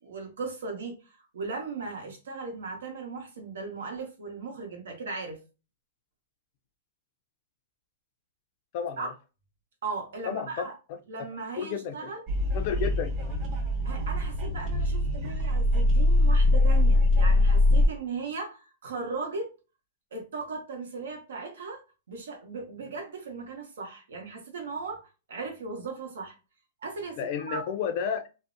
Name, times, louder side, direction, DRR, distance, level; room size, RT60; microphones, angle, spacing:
voice 1, 0.0-5.4 9.0-9.1 9.8-10.8 11.1-12.2 13.8-19.5 20.1-21.8 22.1-26.3 26.8-27.7, right 4 dB, 85° right, 0.9 m, -37 dB
voice 2, 8.7-9.1 10.2-10.6 11.6-11.9 12.5-13.4 27.2-28.3, left 7 dB, 45° left, 0.4 m, -31 dB
sound 1, 12.3-17.9, left 1 dB, 30° right, 0.7 m, -23 dB
2.6 x 2.0 x 2.5 m
hypercardioid pair, 150°, 0 cm